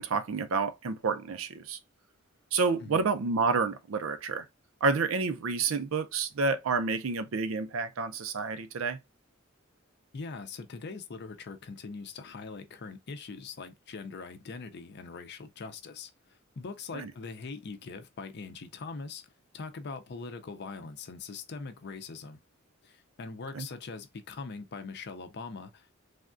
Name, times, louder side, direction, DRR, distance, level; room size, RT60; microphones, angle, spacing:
voice 1, 0.0-1.8 2.5-4.5 4.8-9.0 16.9-17.1 23.5-23.7, right 4 dB, 75° right, 0.5 m, -29 dB
voice 2, 10.1-22.4 22.8-26.0, left 4 dB, 55° left, 0.5 m, -42 dB
3.4 x 2.3 x 2.4 m
head